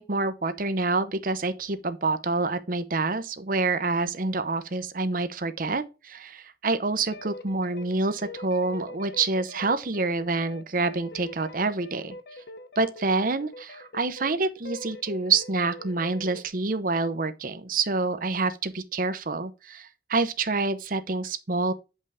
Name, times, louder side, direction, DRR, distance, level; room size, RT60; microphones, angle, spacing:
voice 1, 0.0-12.1 12.8-21.7, right 3 dB, 50° right, 0.8 m, -27 dB
sound 1, 7.1-14.3 14.6-16.5, left 2 dB, 60° left, 0.8 m, -43 dB
8.0 x 5.5 x 3.6 m
head